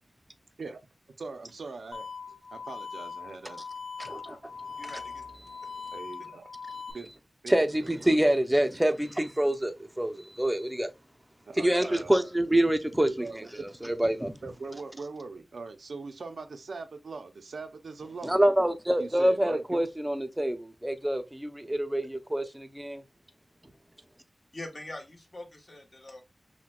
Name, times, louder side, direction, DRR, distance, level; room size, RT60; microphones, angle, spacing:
voice 1, 1.2-2.1 2.5-3.6 5.9-6.5 6.9-7.1 7.4-7.5 7.8-7.9 11.5-12.1 13.0-13.6 14.4-18.3 19.0-19.8, right 4 dB, 90° right, 0.5 m, -41 dB
sound 1, 1.9-6.9, left 5 dB, 70° left, 0.5 m, -41 dB
voice 2, 4.0-4.4 4.8-4.9 6.7-6.8 7.5-10.9 11.6-14.3 18.2-23.0, right 1 dB, 10° right, 0.5 m, -26 dB
voice 3, 4.8-5.2 24.5-26.2, left 2 dB, 45° left, 1.1 m, -43 dB
5.9 x 2.2 x 2.2 m
wide cardioid pair, 80°, 0 cm